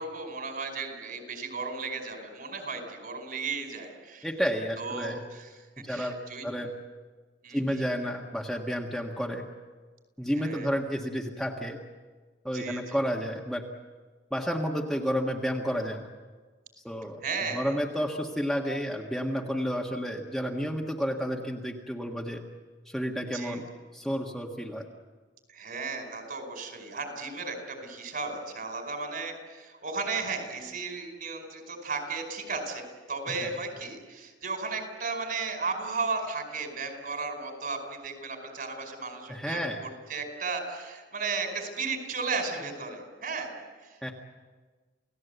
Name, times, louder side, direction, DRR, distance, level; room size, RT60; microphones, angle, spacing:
voice 1, 0.0-4.3 4.8-5.5 5.9-6.5 7.4-7.8 10.3-10.8 12.5-13.0 17.2-17.7 23.3-23.6 25.5-44.0, right 4 dB, 50° right, 4 dB, 5.1 m, -35 dB
voice 2, 4.2-5.2 5.8-6.2 6.4-6.7 7.5-9.4 10.2-11.8 12.4-13.6 14.3-16.0 16.8-17.2 17.5-22.4 22.9-23.7 23.9-24.8 33.4-33.5 39.3-39.8 44.0-44.1, equal, ahead, -1 dB, 1.6 m, -31 dB
29.0 x 17.5 x 8.1 m, 1.4 s
head